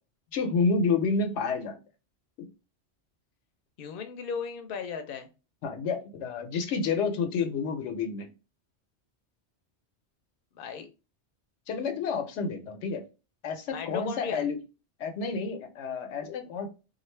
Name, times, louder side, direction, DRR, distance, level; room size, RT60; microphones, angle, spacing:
voice 1, 0.3-1.8 2.4-2.5 5.6-8.3 11.7-13.0 13.4-14.6 15.0-16.7, left 4 dB, 90° left, 0.9 m, -29 dB
voice 2, 3.8-5.3 10.6-10.9 13.7-14.4, left 6 dB, 65° left, 0.7 m, -36 dB
2.4 x 2.4 x 3.1 m
omnidirectional pair, 1.2 m